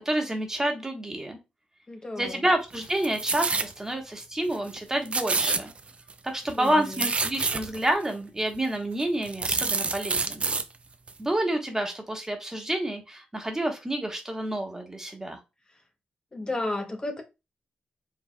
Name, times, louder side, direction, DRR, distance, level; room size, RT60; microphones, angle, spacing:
voice 1, 0.0-1.4 2.2-5.7 6.2-10.4 11.2-15.4, right 1 dB, 15° right, 1.3 m, -29 dB
voice 2, 1.9-2.4 6.6-7.0 16.3-17.2, left 2 dB, 30° left, 0.8 m, -33 dB
sound 1, 2.7-3.7 4.2-4.3 4.5-4.8 5.0-6.1 6.5-7.9 8.5-8.6 9.0-10.6 11.1-11.2, right 4 dB, 40° right, 0.5 m, -28 dB
4.7 x 3.3 x 2.2 m
cardioid pair, 70°, 3 cm